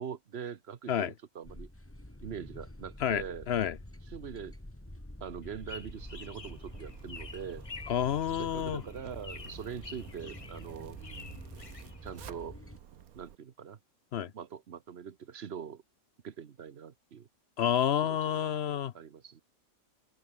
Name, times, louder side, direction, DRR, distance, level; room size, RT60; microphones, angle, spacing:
voice 1, 0.0-1.7 2.2-3.5 4.1-4.5 5.2-7.7 8.4-11.0 12.0-12.6 13.2-13.8 14.3-15.8 16.2-17.3 18.0-18.5 18.9-19.4, right 7 dB, 50° right, 1.2 m, -43 dB
sound 1, 1.4-12.8, left 1 dB, 10° left, 2.1 m, -48 dB
voice 2, 3.0-3.8 7.9-8.8 14.1-14.3 17.6-18.9, left 9 dB, 55° left, 0.8 m, -29 dB
sound 2, 5.4-12.5, left 4 dB, 30° left, 0.8 m, -49 dB
Zipper (clothing), 5.8-13.4, right 9 dB, 85° right, 1.5 m, -52 dB
omnidirectional pair, 1.5 m